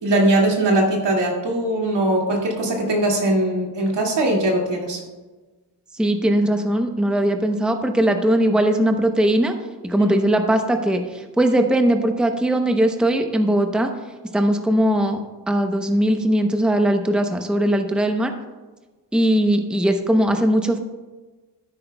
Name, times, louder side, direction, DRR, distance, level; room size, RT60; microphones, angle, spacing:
voice 1, 0.0-5.0 10.0-10.1, right 1 dB, 80° right, -1 dB, 2.3 m, -20 dB
voice 2, 5.9-9.5 9.8-13.9 14.3-15.2 15.5-18.3 19.1-20.8, right 1 dB, ahead, 5 dB, 0.8 m, -19 dB
12.0 x 9.8 x 2.3 m, 1.2 s
wide cardioid pair, 95°, 42 cm